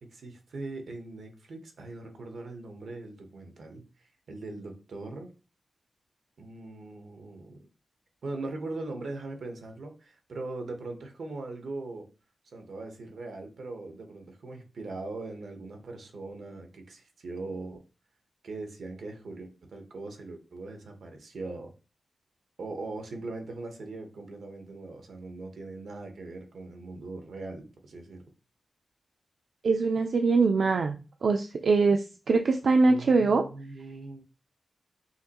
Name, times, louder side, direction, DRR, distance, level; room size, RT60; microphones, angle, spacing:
voice 1, 0.0-3.8 4.3-5.3 6.4-7.7 8.2-12.1 12.5-17.8 18.4-21.7 22.6-28.2 32.8-34.2, right 2 dB, 80° right, 4 dB, 1.0 m, -40 dB
voice 2, 29.6-31.0 31.2-33.4, right 4 dB, 60° right, 5 dB, 0.4 m, -23 dB
5.6 x 3.0 x 2.9 m, 0.33 s
wide cardioid pair, 175°, 0 cm